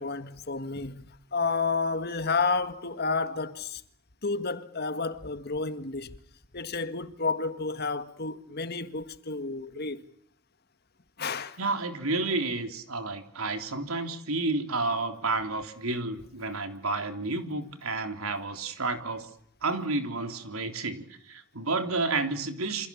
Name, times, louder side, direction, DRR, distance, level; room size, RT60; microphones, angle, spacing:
voice 1, 0.0-3.8 4.2-6.1 6.5-10.0 11.2-11.6, left 4 dB, 50° left, 1.7 m, -31 dB
voice 2, 11.6-19.3 19.6-22.9, right 3 dB, 80° right, 3.6 m, -31 dB
28.5 x 27.0 x 7.2 m
head